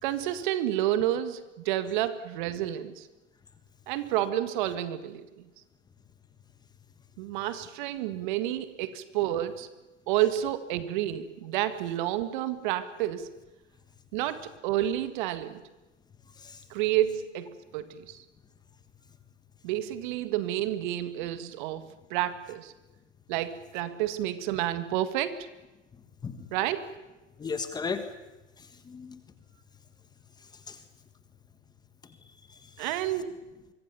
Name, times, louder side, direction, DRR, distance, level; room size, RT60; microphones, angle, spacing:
voice 1, 0.0-3.1 3.9-5.3 7.2-9.7 10.1-13.3 14.1-15.6 16.7-18.2 19.6-22.7 23.3-25.5 26.5-26.9 32.8-33.4, right 13 dB, 40° right, 12 dB, 1.8 m, -30 dB
voice 2, 27.4-28.0 28.6-29.2 30.7-30.8 32.5-32.9, left 5 dB, 10° left, 9 dB, 1.6 m, -36 dB
25.0 x 24.0 x 7.0 m, 1.1 s
hypercardioid pair, 130°, 36 cm